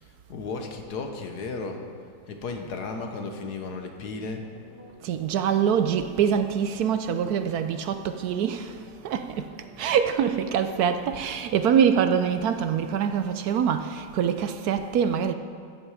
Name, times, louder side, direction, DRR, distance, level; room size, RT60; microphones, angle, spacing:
voice 1, 0.0-1.8 2.3-4.5, left 3 dB, 70° left, 1.6 m, -34 dB
sound 1, 4.3-11.4, right 2 dB, 35° right, 1.7 m, -51 dB
voice 2, 5.0-15.3, right 8 dB, 70° right, 1.0 m, -25 dB
14.0 x 8.8 x 4.8 m
omnidirectional pair, 1.8 m